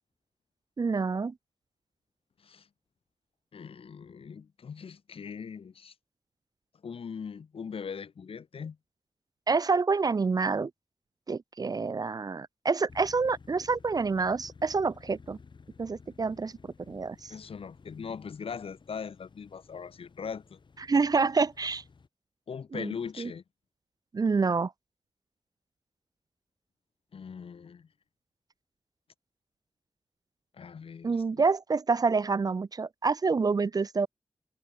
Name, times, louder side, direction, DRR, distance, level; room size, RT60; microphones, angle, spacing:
voice 1, 0.8-1.3 9.5-10.7 11.3-15.4 15.8-16.5 16.9-17.3 20.9-21.8 22.7-23.3 24.1-24.7 31.0-34.1, right 4 dB, 40° right, 0.6 m, -27 dB
voice 2, 3.5-5.9 6.8-8.8 17.3-20.6 22.5-23.4 27.1-27.9 30.5-31.4, left 6 dB, 80° left, 2.1 m, -40 dB
sound 1, 12.9-22.1, left 4 dB, 55° left, 3.6 m, -54 dB
wide cardioid pair, 105°, 9 cm